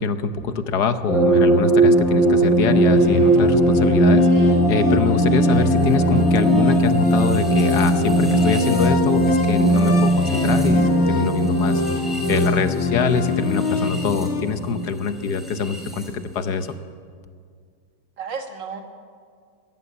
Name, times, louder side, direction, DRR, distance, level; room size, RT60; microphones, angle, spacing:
voice 1, 0.0-16.7, left 6 dB, 65° left, 10 dB, 1.5 m, -25 dB
sound 1, 1.1-16.1, right 1 dB, ahead, 4.1 m, -19 dB
sound 2, 2.6-14.4, left 4 dB, 40° left, 1.7 m, -27 dB
voice 2, 4.3-4.7 18.2-18.8, right 5 dB, 80° right, 5 dB, 2.5 m, -33 dB
20.5 x 15.5 x 9.7 m, 2.1 s
omnidirectional pair, 1.9 m